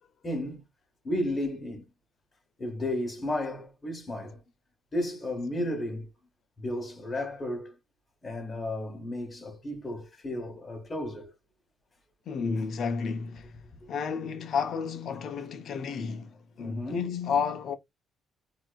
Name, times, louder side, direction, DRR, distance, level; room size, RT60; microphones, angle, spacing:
voice 1, 0.2-0.6 1.0-1.9 2.6-4.4 4.9-6.1 6.6-7.7 8.2-11.3 16.6-17.1, left 1 dB, 35° left, 1.7 m, -33 dB
voice 2, 12.3-17.8, left 6 dB, 65° left, 0.9 m, -32 dB
4.3 x 3.0 x 2.3 m
cardioid pair, 90°, 0 cm